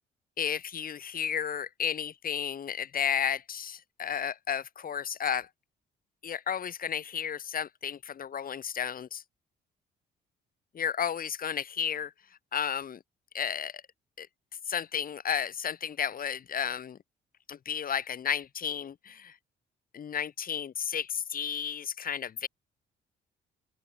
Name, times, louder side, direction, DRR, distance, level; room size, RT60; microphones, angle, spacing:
voice 1, 0.4-5.5 6.2-9.2 10.7-12.1 12.5-13.0 13.3-13.8 14.2-14.3 14.7-17.0 17.5-19.4 19.9-22.5, left 8 dB, 45° left, 1.0 m, -33 dB
open air
cardioid pair, 90°, 20 cm